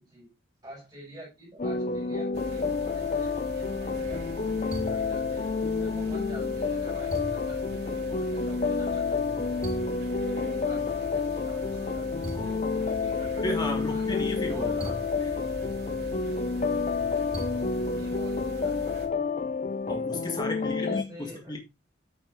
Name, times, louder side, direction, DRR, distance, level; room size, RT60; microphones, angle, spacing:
voice 1, 0.6-5.5 5.8-9.4 9.7-9.8 10.2-15.0 16.3-16.8 17.9-18.9 20.6-21.5, right 1 dB, 25° right, 5.2 m, -48 dB
sound 1, 1.6-21.0, left 4 dB, 40° left, 0.5 m, -29 dB
sound 2, 2.3-19.1, right 1 dB, 60° right, 2.7 m, -41 dB
voice 2, 13.4-14.9 19.9-21.6, left 2 dB, 25° left, 2.0 m, -33 dB
8.7 x 7.6 x 3.1 m
head